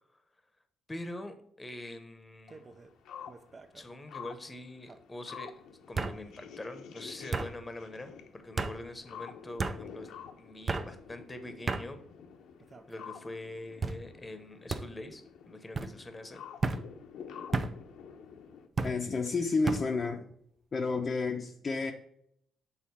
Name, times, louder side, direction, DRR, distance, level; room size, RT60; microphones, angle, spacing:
voice 1, 0.9-2.6 3.7-5.5 5.9-10.1 10.4-12.0 12.9-16.4, left 1 dB, 15° left, 0.9 m, -44 dB
sound 1, 2.5-18.7, left 7 dB, 80° left, 0.8 m, -49 dB
sound 2, 2.5-2.9 3.3-3.8 4.9-5.0 6.0-6.2 7.3-7.5 8.6-8.8 9.6-9.8 10.7-10.9 11.7-11.9 12.6-13.0 13.8-14.0 14.7-14.9 15.7-15.9 16.6-16.8 17.5-17.7 18.8-19.0 19.7-19.9, right 4 dB, 30° right, 0.5 m, -32 dB
voice 2, 18.8-20.3 20.7-21.9, left 3 dB, 35° left, 0.6 m, -30 dB
6.5 x 3.7 x 5.6 m
cardioid pair, 105°, 0 cm